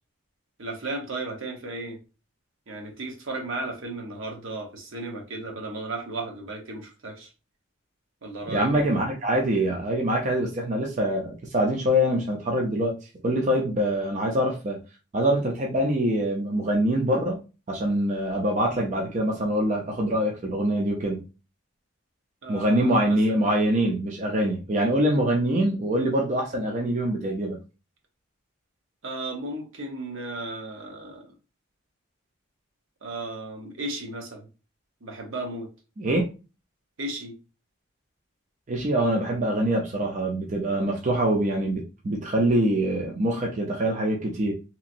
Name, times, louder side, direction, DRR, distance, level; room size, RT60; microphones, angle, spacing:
voice 1, 0.6-2.0 2.7-7.3 8.2-8.9 22.4-23.4 29.0-31.3 33.0-34.5 35.0-35.7 37.0-37.3, right 2 dB, 70° right, 0.8 m, -35 dB
voice 2, 8.5-14.8 15.1-17.4 17.7-21.2 22.5-27.6 36.0-36.3 38.7-44.5, right 1 dB, 35° right, 0.5 m, -24 dB
2.9 x 2.5 x 2.5 m
head